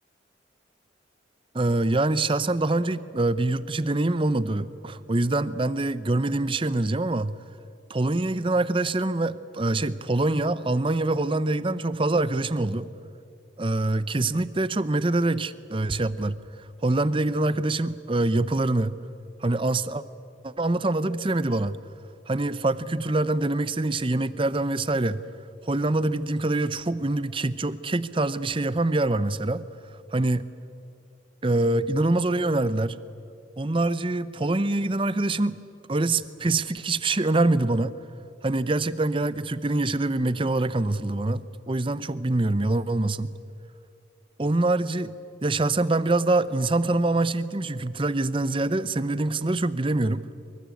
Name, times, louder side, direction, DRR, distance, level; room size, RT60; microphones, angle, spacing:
voice 1, 1.5-7.4 7.9-12.9 13.6-16.4 16.8-19.0 19.4-20.0 20.4-21.8 22.3-25.2 25.6-29.6 30.1-30.4 31.4-33.0 33.6-35.6 35.9-37.9 38.4-43.3 44.4-45.1 45.4-50.3, right 2 dB, 25° right, 15 dB, 0.7 m, -25 dB
24.0 x 23.0 x 8.5 m, 2.6 s
head